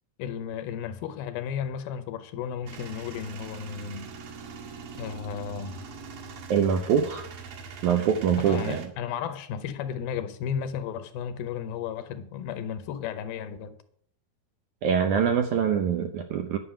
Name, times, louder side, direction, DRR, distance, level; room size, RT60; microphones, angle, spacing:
voice 1, 0.2-4.1 5.0-5.8 8.4-13.8, left 8 dB, 75° left, 2.5 m, -34 dB
Male speech man speaking / Vehicle / Engine starting, 2.7-8.9, right 5 dB, 60° right, 3.2 m, -42 dB
voice 2, 6.5-7.3 7.8-8.8 14.8-16.6, right 7 dB, 80° right, 1.7 m, -24 dB
11.5 x 6.1 x 9.0 m
omnidirectional pair, 4.5 m